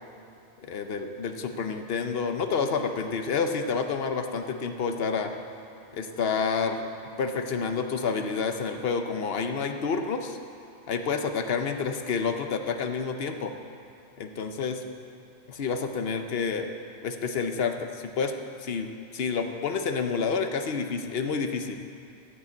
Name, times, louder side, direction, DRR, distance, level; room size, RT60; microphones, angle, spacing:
voice 1, 0.6-5.3 5.9-6.8 7.2-10.4 10.9-13.5 14.2-14.8 15.5-16.7 17.0-18.3 18.6-21.8, left 5 dB, 60° left, 6 dB, 0.9 m, -29 dB
15.0 x 5.3 x 8.3 m, 2.6 s
omnidirectional pair, 1.2 m